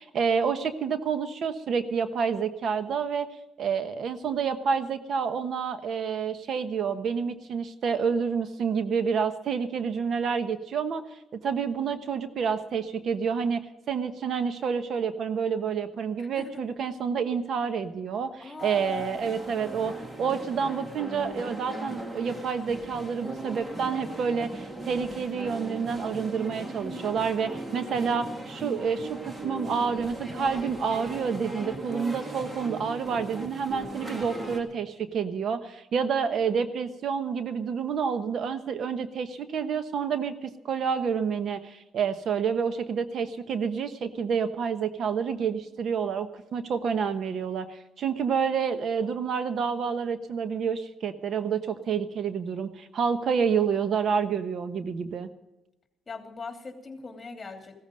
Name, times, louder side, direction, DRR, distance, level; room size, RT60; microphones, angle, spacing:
voice 1, 0.0-3.3 3.6-11.0 11.3-55.3, right 6 dB, 60° right, 10 dB, 1.1 m, -29 dB
voice 2, 16.2-16.6 18.4-19.1 53.3-53.5 56.1-57.8, left 4 dB, 30° left, 4 dB, 3.0 m, -41 dB
sound 1, 18.6-34.6, right 1 dB, 25° right, 2.3 m, -38 dB
16.0 x 14.0 x 5.3 m, 0.91 s
cardioid pair, 90°, 0 cm